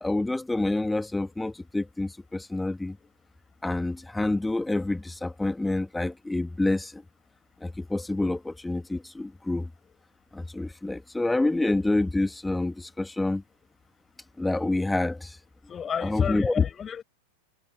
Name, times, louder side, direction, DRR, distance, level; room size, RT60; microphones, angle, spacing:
voice 1, 0.0-3.0 3.6-7.0 7.6-9.7 10.3-13.4 14.4-15.4 16.0-16.5, left 2 dB, 5° left, 2.5 m, -28 dB
voice 2, 15.7-17.0, left 7 dB, 20° left, 6.4 m, -28 dB
figure-of-eight pair, 90°, 0 cm